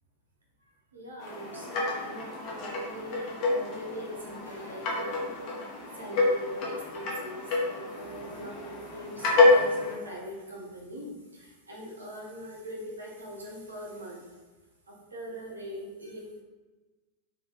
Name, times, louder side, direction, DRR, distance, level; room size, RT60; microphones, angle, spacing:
voice 1, 0.7-5.6 5.9-14.4 14.9-16.4, equal, 75° right, -2 dB, 0.9 m, -42 dB
sound 1, 1.2-10.0, left 3 dB, 40° left, 0.9 m, -28 dB
3.7 x 3.0 x 2.5 m, 1.2 s
figure-of-eight pair, 90°, 0 cm